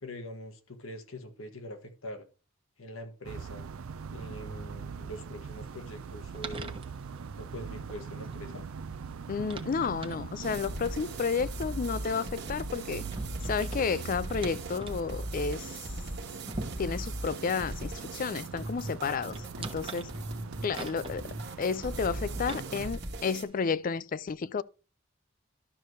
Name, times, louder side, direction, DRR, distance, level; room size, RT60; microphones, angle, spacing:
voice 1, 0.0-2.3 2.8-3.7 4.1-6.8 7.4-8.6, left 1 dB, 80° left, 1.3 m, -43 dB
sound 1, 3.2-22.9, right 5 dB, 90° right, 0.5 m, -43 dB
sound 2, 5.4-23.7, right 3 dB, 25° right, 1.0 m, -46 dB
voice 2, 9.3-13.1 13.4-15.9 16.8-20.1 20.6-21.3 21.6-24.6, left 5 dB, 40° left, 0.4 m, -31 dB
sound 3, 10.4-23.4, right 1 dB, 55° right, 1.4 m, -39 dB
11.5 x 6.6 x 3.1 m
head